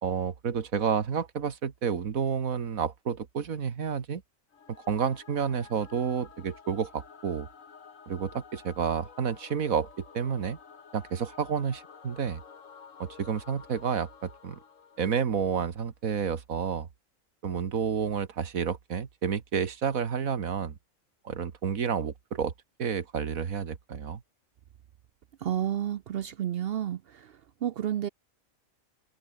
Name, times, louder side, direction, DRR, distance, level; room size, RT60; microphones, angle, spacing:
voice 1, 0.0-4.2 4.9-7.5 8.1-9.9 10.1-10.6 10.9-12.4 13.0-14.6 15.0-16.9 17.4-20.8 21.3-22.5 22.8-24.2, right 7 dB, 90° right, 1.9 m, -30 dB
Singing / Musical instrument, 4.5-15.8, left 6 dB, 70° left, 2.0 m, -52 dB
voice 2, 25.4-27.3 27.6-28.1, right 10 dB, 60° right, 0.7 m, -31 dB
omnidirectional pair, 1.4 m